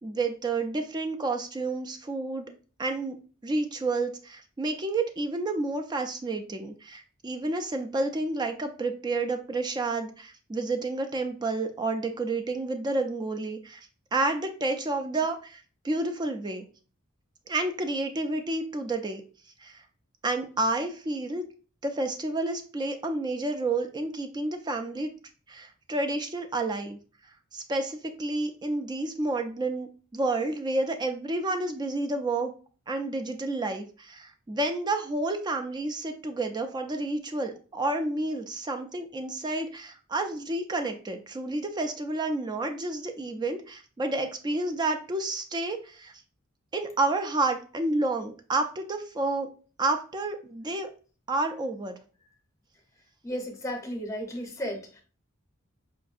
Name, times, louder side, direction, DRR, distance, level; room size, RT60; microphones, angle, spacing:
voice 1, 0.0-2.5 2.8-3.2 3.4-16.6 17.5-19.2 19.6-19.8 20.2-21.4 21.8-25.1 25.5-27.0 27.5-32.5 32.9-46.1 46.7-49.5 49.8-50.9 51.3-52.0, right 2 dB, 20° right, 6 dB, 0.3 m, -30 dB
voice 2, 53.2-55.0, equal, 15° left, 2 dB, 0.7 m, -34 dB
4.7 x 2.6 x 2.4 m, 0.38 s
head